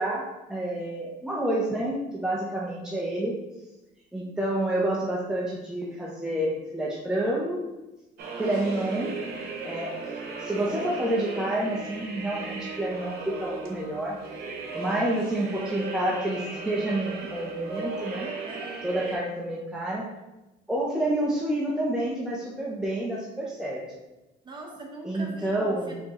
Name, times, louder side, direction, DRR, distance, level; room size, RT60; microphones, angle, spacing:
voice 1, 0.0-3.3 4.1-7.6 8.4-9.2 9.6-14.2 14.7-18.3 18.8-20.0 20.7-23.8 25.0-25.9, right 1 dB, 5° right, -4 dB, 0.6 m, -29 dB
sound 1, 8.2-19.2, right 3 dB, 65° right, 1.0 m, -36 dB
voice 2, 18.4-18.9 24.4-25.9, right 2 dB, 25° right, -1 dB, 1.1 m, -42 dB
4.5 x 2.9 x 3.7 m, 1.0 s
cardioid pair, 110°, 17 cm